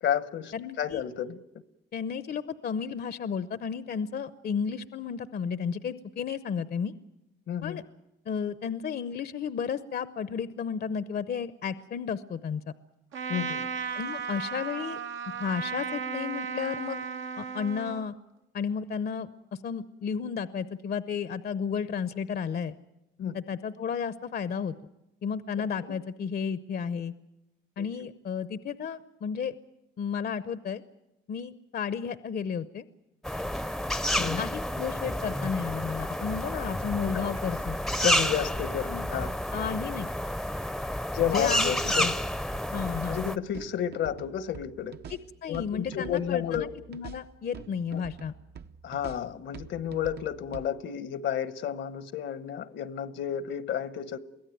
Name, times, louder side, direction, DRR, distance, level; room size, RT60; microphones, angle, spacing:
voice 1, 0.0-1.4 7.5-7.8 13.3-13.7 23.2-23.4 25.6-26.0 27.8-27.9 34.2-34.4 38.0-39.3 41.1-42.1 43.1-44.9 45.5-46.7 47.9-48.1 48.8-54.2, left 9 dB, 70° left, 1.1 m, -31 dB
voice 2, 0.5-1.0 1.9-6.9 7.6-7.8 8.3-12.6 13.9-15.0 15.4-17.0 17.4-18.1 18.5-19.3 19.6-22.7 23.3-24.7 25.2-27.1 27.8-29.6 30.0-30.8 31.3-32.8 34.4-37.8 39.5-40.1 41.2-42.1 42.7-43.2 45.1-48.3, left 7 dB, 50° left, 0.8 m, -33 dB
Trumpet, 13.1-18.1, right 6 dB, 75° right, 1.2 m, -35 dB
sound 1, 33.2-43.4, equal, ahead, 0.7 m, -30 dB
sound 2, 41.9-50.7, right 7 dB, 55° right, 0.9 m, -47 dB
23.5 x 16.5 x 9.1 m
cardioid pair, 90°, 20 cm